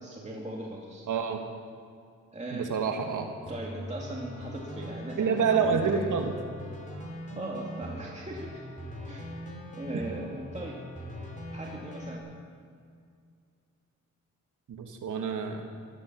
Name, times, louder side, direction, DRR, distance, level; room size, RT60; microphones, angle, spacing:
voice 1, 0.0-1.1 2.3-2.7 3.5-6.1 7.4-8.7 9.1-9.3 9.8-10.8 11.5-12.3, right 1 dB, 20° right, -3 dB, 2.2 m, -39 dB
voice 2, 1.1-1.4 2.5-3.3 5.2-6.3 9.9-10.0 14.7-15.6, right 6 dB, 75° right, 4 dB, 1.6 m, -28 dB
sound 1, 3.5-12.2, equal, 25° left, 3.2 m, -41 dB
16.0 x 13.0 x 6.0 m, 2.3 s
cardioid pair, 75°, 32 cm